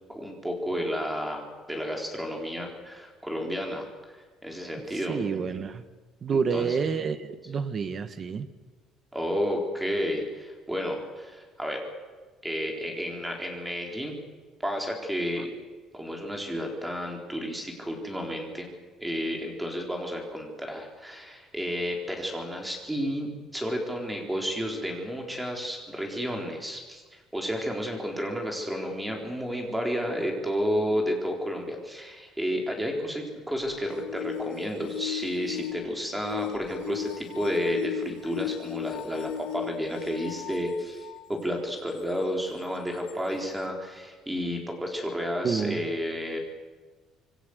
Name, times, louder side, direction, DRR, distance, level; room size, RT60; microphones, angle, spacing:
voice 1, 0.1-3.8 4.1-5.2 6.3-6.8 9.1-11.9 12.4-14.1 14.6-15.5 15.9-18.7 19.0-46.4, equal, 5° right, 1 dB, 4.3 m, -31 dB
voice 2, 5.1-5.8 6.2-8.5 45.4-45.8, right 6 dB, 30° right, 11 dB, 1.4 m, -28 dB
sound 1, 33.6-41.3 42.0-42.1 43.1-43.2, left 15 dB, 85° left, 1.1 m, -37 dB
26.5 x 23.5 x 8.1 m, 1.4 s
cardioid pair, 175°, 0 cm